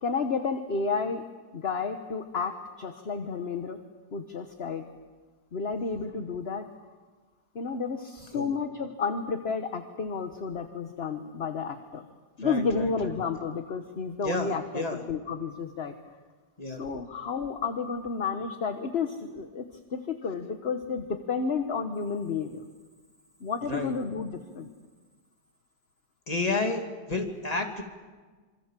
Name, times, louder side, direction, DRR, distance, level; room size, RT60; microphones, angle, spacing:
voice 1, 0.0-1.2 1.5-3.8 4.1-4.8 5.5-6.7 7.5-12.1 12.4-16.0 16.7-19.6 19.9-22.6 23.4-24.7, left 5 dB, 40° left, 7 dB, 1.2 m, -31 dB
voice 2, 12.4-13.1 14.2-15.0 16.6-16.8 23.7-23.9 26.3-27.8, left 2 dB, 20° left, 3 dB, 2.7 m, -31 dB
26.5 x 26.0 x 7.6 m, 1.4 s
omnidirectional pair, 2.0 m